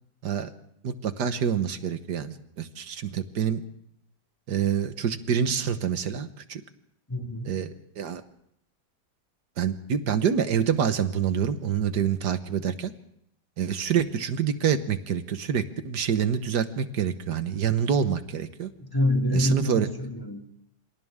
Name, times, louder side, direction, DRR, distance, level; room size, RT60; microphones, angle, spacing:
voice 1, 0.8-3.6 4.5-6.6 7.5-8.2 9.6-12.9 13.6-18.7 19.3-19.9, right 7 dB, 70° right, 10 dB, 1.8 m, -26 dB
voice 2, 7.1-7.6 18.7-20.4, left 1 dB, 10° left, 3 dB, 2.3 m, -26 dB
28.0 x 26.0 x 3.7 m, 0.76 s
omnidirectional pair, 1.9 m